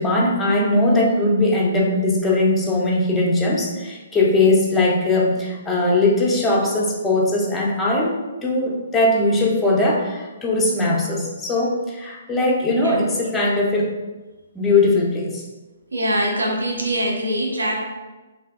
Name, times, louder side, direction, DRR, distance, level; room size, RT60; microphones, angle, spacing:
voice 1, 0.0-13.9 14.5-15.4, left 2 dB, 10° left, -3 dB, 0.5 m, -20 dB
voice 2, 15.9-17.8, equal, 75° right, -1 dB, 0.6 m, -23 dB
3.1 x 2.6 x 2.4 m, 1.2 s
figure-of-eight pair, 130°, 0 cm